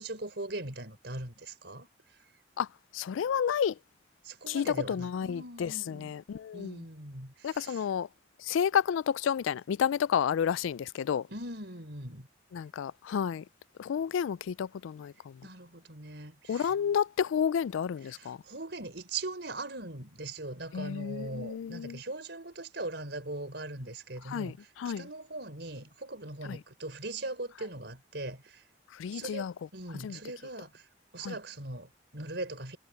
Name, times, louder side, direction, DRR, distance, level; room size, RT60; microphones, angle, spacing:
voice 1, 0.0-1.9 4.2-6.1 6.5-7.8 11.3-12.3 15.4-16.7 18.0-28.6 29.1-30.9 31.1-32.8, right 2 dB, 60° right, 4.7 m, -40 dB
voice 2, 2.9-3.7 4.5-6.8 7.4-8.1 8.4-11.3 12.5-13.4 13.8-15.3 16.5-18.4 20.7-22.0 24.3-25.0 26.5-26.6 29.0-29.5 30.0-30.2 31.2-31.4, left 8 dB, 80° left, 0.3 m, -31 dB
head